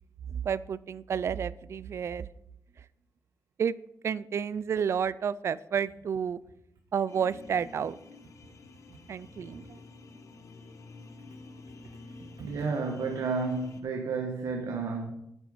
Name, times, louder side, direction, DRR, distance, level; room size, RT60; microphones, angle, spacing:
voice 1, 0.3-2.3 3.6-3.8 4.0-6.4 6.9-8.0 9.1-9.8, right 7 dB, 50° right, 0.3 m, -30 dB
sound 1, 7.1-13.8, left 3 dB, 60° left, 1.0 m, -49 dB
voice 2, 12.4-15.1, right 4 dB, 85° right, 1.3 m, -31 dB
9.2 x 8.8 x 5.0 m
wide cardioid pair, 165°, 6 cm